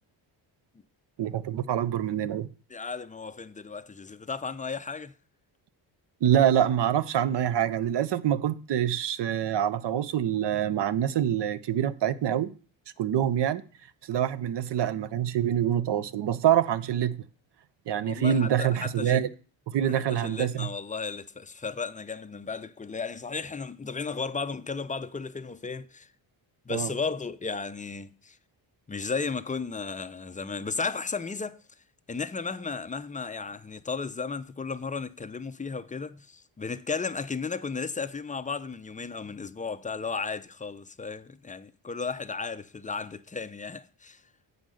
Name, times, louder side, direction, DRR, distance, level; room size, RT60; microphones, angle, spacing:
voice 1, 1.2-2.5 6.2-12.5 13.0-13.6 14.1-17.2 17.9-19.3 19.7-20.7 26.7-26.9, right 10 dB, 60° right, 0.7 m, -25 dB
voice 2, 2.7-5.1 18.0-19.2 19.8-26.1 26.7-28.4 28.9-31.6 32.1-44.2, left 4 dB, 15° left, 0.5 m, -34 dB
7.7 x 5.3 x 6.3 m
cardioid pair, 70°, 48 cm